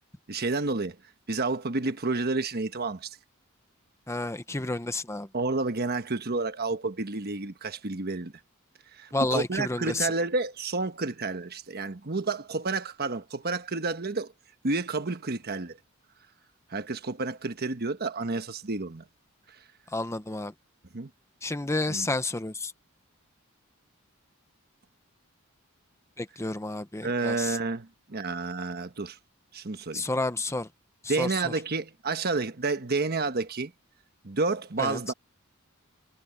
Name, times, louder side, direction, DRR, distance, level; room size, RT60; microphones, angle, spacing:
voice 1, 0.3-1.0 1.3-3.2 5.3-8.3 8.9-14.3 14.6-15.8 16.7-19.0 20.9-21.1 21.9-22.1 27.0-29.2 29.5-30.0 31.1-33.7 34.2-35.1, right 3 dB, 50° right, 1.3 m, -30 dB
voice 2, 4.1-5.3 9.1-10.1 19.9-20.5 21.4-22.7 26.2-27.6 29.9-30.7 31.2-31.3 34.8-35.0, left 2 dB, 15° left, 0.9 m, -30 dB
head